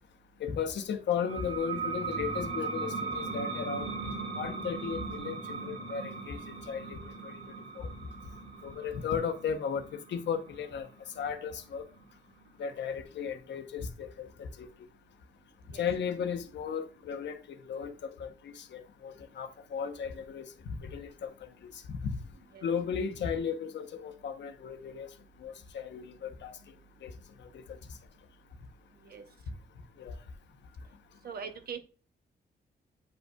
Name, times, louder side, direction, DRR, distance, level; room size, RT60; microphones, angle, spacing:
voice 1, 0.4-3.9 4.4-6.4 6.7-7.3 7.8-7.9 8.6-9.8 10.1-10.9 11.2-11.8 12.6-14.7 15.8-21.3 21.6-21.7 22.0-22.2 22.6-25.1 25.4-26.6 27.0-27.1 30.0-30.1, left 7 dB, 90° left, 0.9 m, -35 dB
sound 1, 1.2-12.4, right 4 dB, 80° right, 3.5 m, -39 dB
voice 2, 31.2-31.8, right 6 dB, 60° right, 1.0 m, -41 dB
8.8 x 5.4 x 2.3 m
wide cardioid pair, 170°, 18 cm